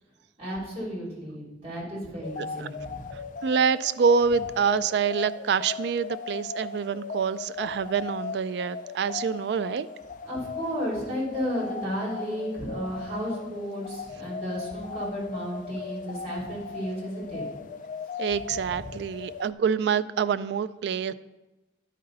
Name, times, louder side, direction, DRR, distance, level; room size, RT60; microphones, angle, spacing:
voice 1, 0.4-3.1 10.2-17.4 18.7-18.8, equal, 35° right, -5 dB, 3.0 m, -33 dB
sound 1, 2.2-19.5, left 5 dB, 45° left, 0.3 m, -38 dB
voice 2, 3.4-9.9 18.2-21.1, right 6 dB, 65° right, 15 dB, 0.3 m, -26 dB
11.0 x 5.4 x 3.9 m, 1.1 s
head